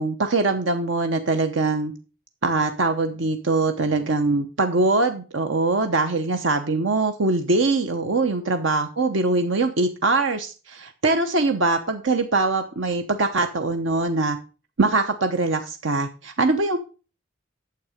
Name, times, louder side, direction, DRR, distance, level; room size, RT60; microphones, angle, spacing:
voice 1, 0.0-1.9 2.4-14.4 14.8-16.8, right 3 dB, 70° right, 6 dB, 0.9 m, -22 dB
9.4 x 7.2 x 5.0 m, 0.35 s
head